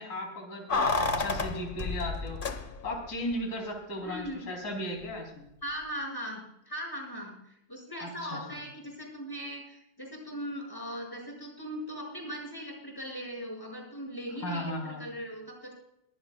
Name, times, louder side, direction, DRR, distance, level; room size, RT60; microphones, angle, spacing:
voice 1, 0.0-2.4 2.8-5.5 8.0-8.4 14.4-15.0, left 1 dB, 55° left, 1 dB, 3.5 m, -36 dB
Keys jangling, 0.7-3.1 3.3-3.4, left 3 dB, 35° left, 0.9 m, -30 dB
voice 2, 4.0-4.5 5.6-15.7, equal, 10° left, 0 dB, 5.6 m, -39 dB
22.5 x 15.5 x 2.2 m, 0.78 s
omnidirectional pair, 2.1 m